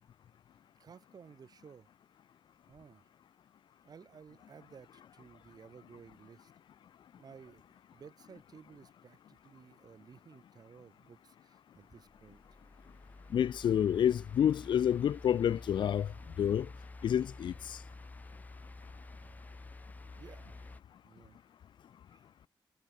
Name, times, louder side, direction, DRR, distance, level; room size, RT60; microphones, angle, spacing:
voice 1, 0.8-1.9 2.7-3.1 3.8-6.5 7.2-7.6 7.9-12.4 20.2-20.7 21.0-21.4 22.1-22.2, right 6 dB, 50° right, 7.6 m, -55 dB
sound 1, 11.7-20.8, left 2 dB, 20° left, 5.6 m, -50 dB
voice 2, 13.3-16.1 16.4-16.7 17.0-17.8, left 9 dB, 70° left, 0.4 m, -29 dB
wide cardioid pair, 180°, 8 cm